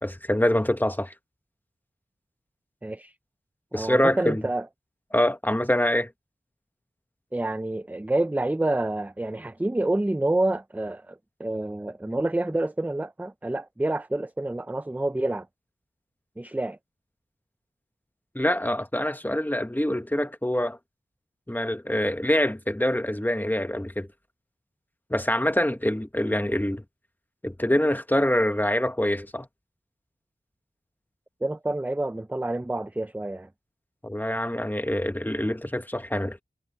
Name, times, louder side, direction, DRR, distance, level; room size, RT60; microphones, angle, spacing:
voice 1, 0.0-1.1 3.7-4.4 5.1-6.1 18.3-20.8 21.5-24.1 25.1-26.8 27.4-29.5 34.0-36.4, left 1 dB, 10° left, 1.2 m, -25 dB
voice 2, 2.8-3.1 3.7-4.7 7.3-15.5 16.4-16.8 31.4-33.5, right 2 dB, 10° right, 0.4 m, -28 dB
wide cardioid pair, 60°, 20 cm